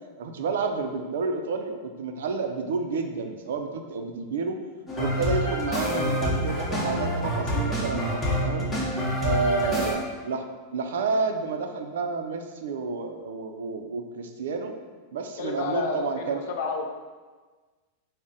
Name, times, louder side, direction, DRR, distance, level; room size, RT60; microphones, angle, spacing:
voice 1, 0.2-4.6 5.0-8.7 9.2-10.5 10.7-14.7 15.1-16.4, right 4 dB, 90° right, 6 dB, 0.4 m, -30 dB
sound 1, 4.9-9.9, equal, 15° left, 0.6 m, -27 dB
voice 2, 9.6-10.0 15.4-16.9, left 4 dB, 65° left, 3 dB, 0.4 m, -31 dB
3.5 x 2.1 x 3.9 m, 1.4 s
supercardioid pair, 170°, 0 cm